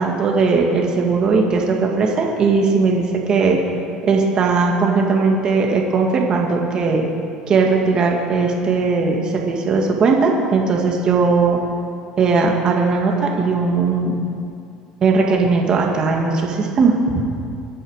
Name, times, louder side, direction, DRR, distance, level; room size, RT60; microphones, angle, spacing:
voice 1, 0.0-3.6 4.0-7.0 7.5-11.6 12.2-14.2 15.0-17.2, right 4 dB, 35° right, 0 dB, 2.2 m, -18 dB
24.5 x 8.6 x 6.6 m, 2.5 s
cardioid pair, 130°, 2 cm